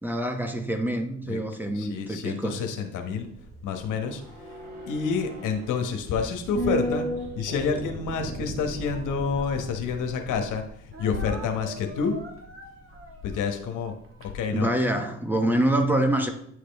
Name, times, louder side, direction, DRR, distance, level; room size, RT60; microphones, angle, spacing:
voice 1, 0.0-2.6 14.5-16.3, right 1 dB, 5° right, 5 dB, 1.0 m, -26 dB
voice 2, 1.7-3.3 3.6-4.2 4.9-7.1 7.4-10.6 11.0-12.2 13.2-13.9 14.2-14.7, left 5 dB, 85° left, 5 dB, 1.2 m, -28 dB
sound 1, 3.1-13.6 13.9-14.0, right 1 dB, 85° right, 2.8 m, -36 dB
Speech, 8.7-10.3 10.9-15.0, equal, 45° right, 1.7 m, -45 dB
9.3 x 5.0 x 3.5 m, 0.70 s
cardioid pair, 90°, 30 cm